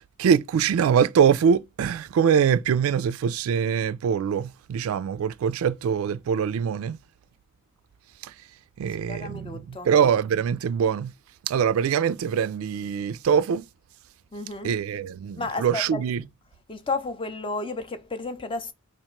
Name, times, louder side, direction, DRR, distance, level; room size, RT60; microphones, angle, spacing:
voice 1, 0.0-7.0 8.2-8.3 8.8-11.1 11.4-13.7 14.6-16.2, right 7 dB, 75° right, 0.3 m, -23 dB
voice 2, 9.1-9.9 14.3-14.7 15.4-16.0 16.7-18.7, left 3 dB, 25° left, 0.5 m, -32 dB
2.9 x 2.5 x 4.3 m
head